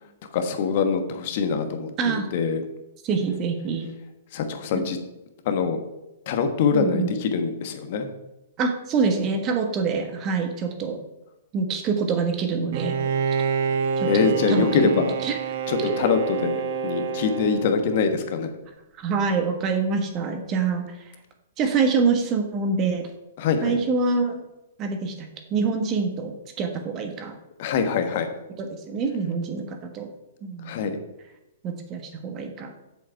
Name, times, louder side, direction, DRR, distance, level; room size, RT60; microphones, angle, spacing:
voice 1, 0.3-2.6 4.3-5.0 5.4-5.8 6.3-8.1 13.6-13.8 14.1-15.1 15.7-18.5 23.4-23.8 27.6-28.3 30.6-31.0, left 5 dB, 50° left, 7 dB, 1.3 m, -24 dB
voice 2, 3.0-3.9 6.7-7.1 8.6-11.0 11.5-13.0 14.0-15.4 15.8-15.9 19.0-20.9 21.6-23.1 23.6-24.4 24.8-27.3 28.6-30.1 30.4-30.7 31.6-32.7, right 5 dB, 30° right, 5 dB, 1.4 m, -25 dB
Bowed string instrument, 12.7-18.3, right 6 dB, 55° right, 0.8 m, -28 dB
7.5 x 6.9 x 4.6 m, 0.95 s
hypercardioid pair, 115°, 0 cm